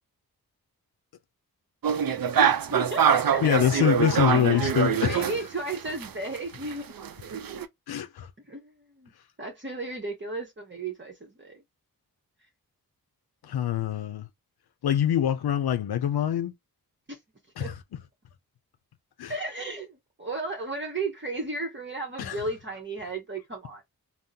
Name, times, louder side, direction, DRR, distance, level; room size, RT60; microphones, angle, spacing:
sound 1, 1.8-6.1 6.4-7.7, right 8 dB, 65° right, 0.6 m, -25 dB
voice 1, 2.4-3.9 4.3-4.6 5.0-6.9 8.5-9.1 9.4-11.6 17.1-17.2 17.6-17.8 19.3-23.8, right 3 dB, 30° right, 0.9 m, -34 dB
voice 2, 3.4-5.3 7.9-8.3 13.4-14.3 14.8-16.5 17.6-17.8 19.2-19.3 22.2-22.4, left 10 dB, 85° left, 0.5 m, -25 dB
3.6 x 2.1 x 2.6 m
cardioid pair, 50°, 37 cm